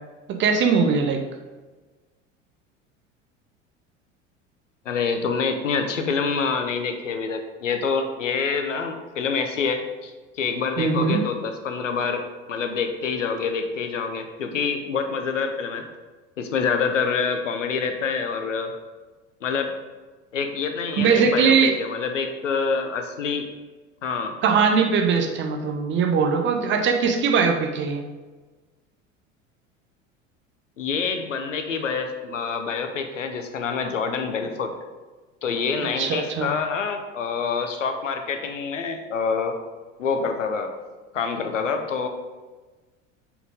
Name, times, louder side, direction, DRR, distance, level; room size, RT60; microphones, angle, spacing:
voice 1, 0.3-1.2 10.8-11.2 21.0-21.8 24.4-28.0 36.0-36.5, right 5 dB, 30° right, 4 dB, 0.8 m, -20 dB
voice 2, 4.8-12.2 12.5-15.8 16.4-18.7 19.4-19.7 20.3-23.5 24.0-24.3 30.8-34.7 35.4-39.6 40.0-40.7 41.1-42.1, left 5 dB, 75° left, 6 dB, 0.9 m, -26 dB
8.0 x 4.9 x 3.6 m, 1.3 s
figure-of-eight pair, 75°, 38 cm